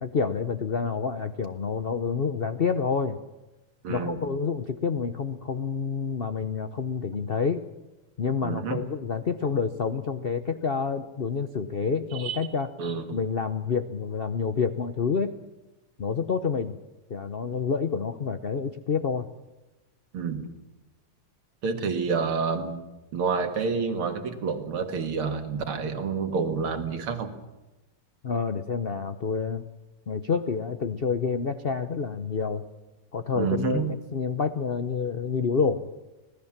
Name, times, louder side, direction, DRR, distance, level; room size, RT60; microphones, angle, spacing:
voice 1, 0.0-3.2 3.9-7.6 8.2-12.7 13.1-15.3 16.0-16.8 17.1-19.3 28.2-29.7 30.1-32.6 33.1-35.9, left 5 dB, 85° left, 10 dB, 0.5 m, -28 dB
voice 2, 3.8-4.2 8.4-8.9 12.1-12.4 12.8-13.2 20.1-20.5 21.6-22.8 23.1-27.3 33.4-33.9, right 5 dB, 80° right, 7 dB, 2.7 m, -29 dB
25.0 x 18.0 x 7.3 m, 1.0 s
omnidirectional pair, 2.4 m